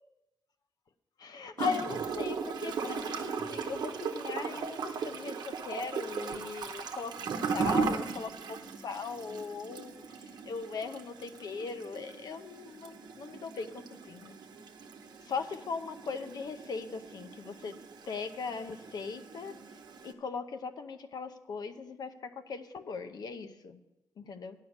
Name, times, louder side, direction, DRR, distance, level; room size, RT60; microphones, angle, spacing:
voice 1, 1.2-8.6 8.8-10.1 10.4-14.4 15.2-17.7 18.1-19.5 20.0-23.8 24.3-24.5, left 5 dB, 70° left, 9 dB, 0.7 m, -39 dB
Gurgling / Toilet flush, 1.6-20.1, right 5 dB, 85° right, 0.8 m, -38 dB
9.6 x 5.6 x 7.9 m, 0.99 s
cardioid pair, 100°, 7 cm